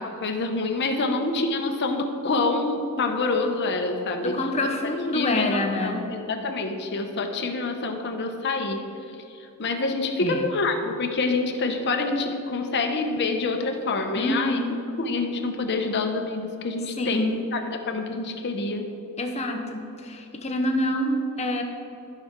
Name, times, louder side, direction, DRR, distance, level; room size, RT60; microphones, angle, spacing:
voice 1, 0.0-4.4 4.8-8.8 9.6-14.6 15.0-18.9, left 3 dB, 50° left, 4 dB, 0.9 m, -27 dB
voice 2, 4.2-6.1 10.2-10.5 14.1-14.8 17.0-17.4 19.2-21.6, left 1 dB, 30° left, 3 dB, 0.9 m, -26 dB
13.5 x 5.7 x 3.7 m, 2.8 s
head